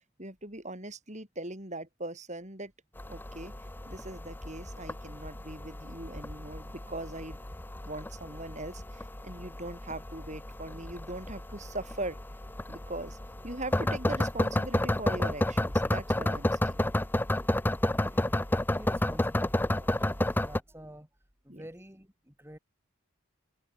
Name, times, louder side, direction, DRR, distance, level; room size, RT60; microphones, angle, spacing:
voice 1, 0.2-2.7 3.1-3.5 3.9-7.4 7.8-12.2 12.7-13.2 13.4-16.8 21.5-21.7, right 2 dB, 30° right, 6.1 m, -40 dB
sound 1, 3.0-20.6, left 1 dB, 10° left, 0.5 m, -31 dB
voice 2, 17.9-21.1 21.4-22.6, right 1 dB, 10° right, 3.7 m, -50 dB
head